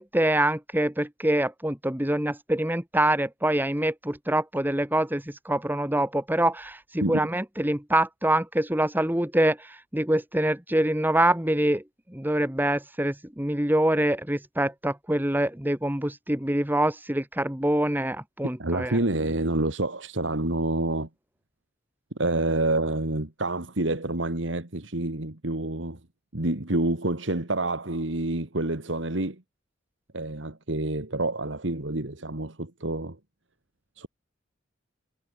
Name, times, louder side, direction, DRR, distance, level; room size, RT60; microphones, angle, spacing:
voice 1, 0.0-11.8 12.1-19.0, right 1 dB, 10° right, 1.8 m, -25 dB
voice 2, 18.6-21.1 22.2-26.0 26.3-29.4 30.1-33.2 34.0-34.1, right 2 dB, 75° right, 2.2 m, -28 dB
head